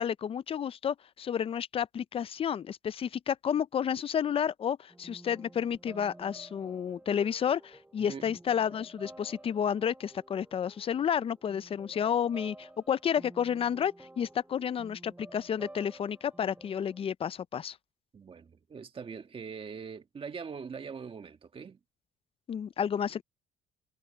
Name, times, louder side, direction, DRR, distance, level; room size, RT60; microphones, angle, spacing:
voice 1, 0.0-17.8 22.5-23.2, left 8 dB, 35° left, 0.5 m, -31 dB
sound 1, 4.9-17.1, right 1 dB, 10° right, 5.8 m, -52 dB
voice 2, 8.0-8.3 18.1-21.8, right 6 dB, 30° right, 1.7 m, -42 dB
cardioid pair, 110°, 17 cm